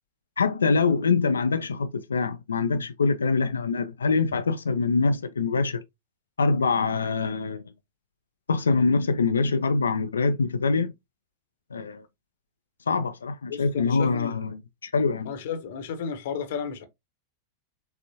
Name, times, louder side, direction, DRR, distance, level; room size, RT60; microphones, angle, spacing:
voice 1, 0.4-5.8 6.4-7.6 8.5-10.9 11.7-12.0 12.9-15.3, left 4 dB, 70° left, 0.4 m, -24 dB
voice 2, 13.5-14.4 15.2-16.9, left 6 dB, 55° left, 0.9 m, -33 dB
5.5 x 3.4 x 2.8 m
figure-of-eight pair, 90°, 0 cm